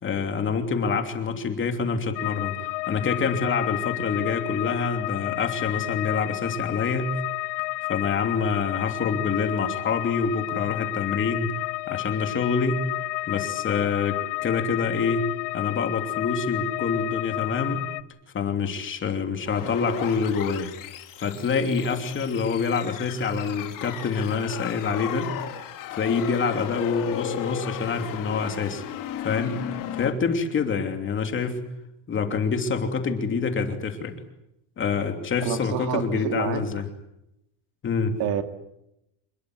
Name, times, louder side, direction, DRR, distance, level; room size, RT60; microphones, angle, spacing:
voice 1, 0.0-2.6 2.9-7.2 7.9-11.5 11.9-12.8 13.3-15.3 15.5-17.9 18.3-20.7 21.2-25.3 25.9-28.8 29.2-29.6 29.9-31.6 32.1-34.1 34.8-36.8 37.8-38.2, left 5 dB, 25° left, 5 dB, 3.0 m, -26 dB
sound 1, 2.2-18.0, left 22 dB, 65° left, 1.1 m, -31 dB
sound 2, 19.5-30.1, left 10 dB, 40° left, 3.3 m, -35 dB
voice 2, 35.4-36.6 38.2-38.4, right 9 dB, 45° right, 8 dB, 2.3 m, -28 dB
27.5 x 21.0 x 7.9 m, 0.85 s
cardioid pair, 175°, 49 cm